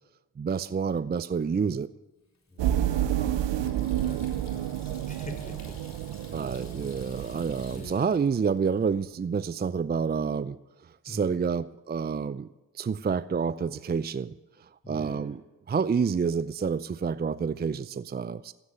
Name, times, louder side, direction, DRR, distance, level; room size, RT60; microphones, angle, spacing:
voice 1, 0.4-1.9 6.3-10.6 10.8-12.5 12.7-14.3 14.9-15.4 15.7-18.5, right 6 dB, 25° right, 16 dB, 0.5 m, -28 dB
Water tap faucet / Sink (filling or washing), 2.3-9.1, left 3 dB, 40° left, 3.9 m, -53 dB
voice 2, 2.5-5.8 7.2-8.3 11.1-11.4 14.8-15.4, equal, 20° left, 5 dB, 3.8 m, -45 dB
sound 1, 2.6-7.9, right 11 dB, 75° right, 0.8 m, -30 dB
13.5 x 8.9 x 9.6 m, 1.1 s
supercardioid pair, 45°, 43 cm